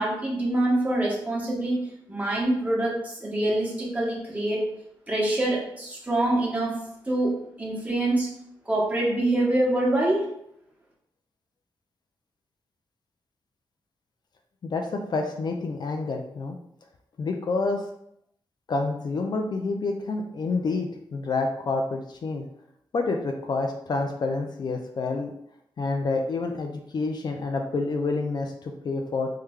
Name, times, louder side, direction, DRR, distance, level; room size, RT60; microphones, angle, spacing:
voice 1, 0.0-4.8 5.1-8.3 8.7-10.3, right 1 dB, 15° right, -4 dB, 1.1 m, -25 dB
voice 2, 14.6-16.6 17.2-17.8 18.7-22.4 22.9-25.3 25.8-29.3, left 3 dB, 55° left, 3 dB, 0.4 m, -28 dB
3.2 x 2.1 x 3.5 m, 0.73 s
cardioid pair, 85°, 9 cm